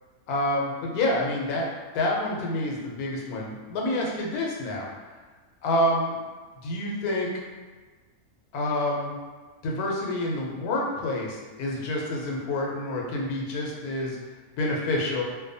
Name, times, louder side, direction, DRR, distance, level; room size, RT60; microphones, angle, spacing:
voice 1, 0.3-1.7 1.9-4.9 5.6-6.2 6.6-7.3 8.5-9.2 9.6-14.2 14.6-15.2, left 1 dB, 80° left, -2 dB, 1.1 m, -28 dB
2.6 x 2.1 x 2.6 m, 1.4 s
omnidirectional pair, 1.6 m